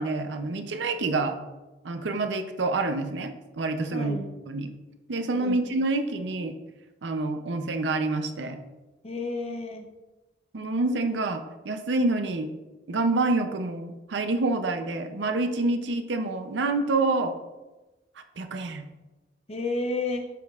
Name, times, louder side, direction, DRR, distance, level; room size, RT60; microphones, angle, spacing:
voice 1, 0.0-1.4 1.8-4.2 4.5-4.7 5.1-6.5 7.0-8.6 10.5-12.5 12.9-17.3 18.4-18.9, right 2 dB, 70° right, 7 dB, 0.6 m, -27 dB
voice 2, 3.9-4.3 5.3-5.6 9.0-9.9 19.5-20.3, left 2 dB, 35° left, 4 dB, 0.7 m, -31 dB
7.6 x 5.2 x 2.4 m, 1.1 s
head